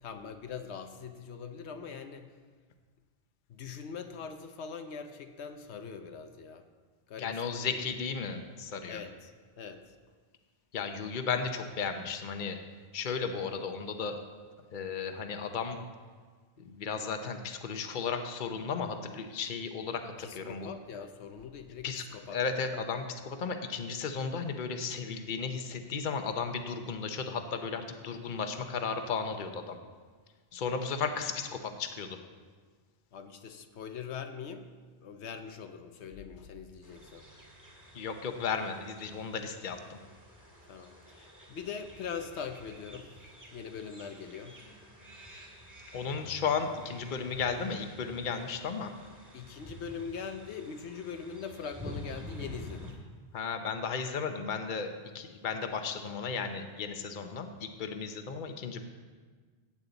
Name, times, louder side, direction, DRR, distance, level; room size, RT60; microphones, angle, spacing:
voice 1, 0.0-2.3 3.5-6.7 7.1-7.7 8.9-10.0 20.2-22.4 33.1-34.7 35.0-37.3 40.7-43.1 43.5-44.6 49.3-52.9, left 6 dB, 85° left, 7 dB, 1.1 m, -42 dB
voice 2, 7.2-9.0 10.7-12.6 12.9-14.3 14.7-15.8 16.6-20.7 21.8-22.0 22.3-29.8 30.5-32.2 37.9-40.0 45.9-48.9 53.3-58.8, left 5 dB, 50° left, 7 dB, 0.9 m, -34 dB
Suburban evening, 36.8-52.9, left 1 dB, 15° right, 1.8 m, -49 dB
16.0 x 8.5 x 4.0 m, 1.5 s
omnidirectional pair, 1.1 m